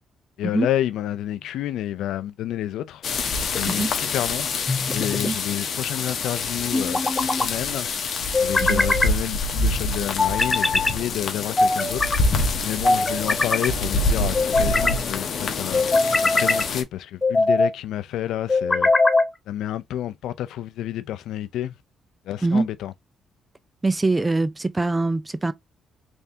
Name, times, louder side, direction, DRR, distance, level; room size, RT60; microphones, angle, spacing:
voice 1, 0.4-3.0 3.5-4.6 4.9-7.9 8.4-12.1 12.6-15.8 16.2-18.9 19.5-21.7 22.3-22.9, left 12 dB, 85° left, 0.5 m, -29 dB
sound 1, 3.0-16.8, left 3 dB, 60° left, 1.0 m, -26 dB
sound 2, 4.7-5.3 6.7-7.5 8.3-9.1 10.2-11.0 11.6-12.2 12.8-13.7 14.3-15.0 15.7-16.7 17.2-17.7 18.5-19.3, left 3 dB, 20° left, 0.7 m, -21 dB
voice 2, 23.8-25.5, right 3 dB, 15° right, 0.5 m, -23 dB
3.5 x 3.3 x 2.7 m
cardioid pair, 90°, 0 cm